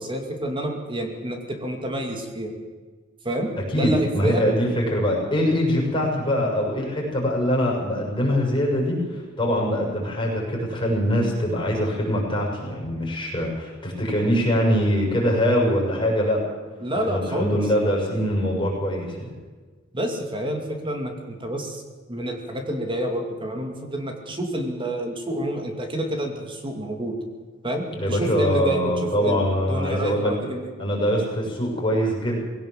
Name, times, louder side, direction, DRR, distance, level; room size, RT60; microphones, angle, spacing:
voice 1, 0.0-2.5 3.2-4.7 16.8-17.6 19.9-21.8 22.1-27.1 27.6-30.7, right 1 dB, 25° right, 3 dB, 2.5 m, -28 dB
voice 2, 3.7-16.4 17.0-19.3 27.9-30.3 30.8-32.4, equal, 25° left, -2 dB, 6.8 m, -23 dB
20.0 x 17.5 x 7.6 m, 1.4 s
head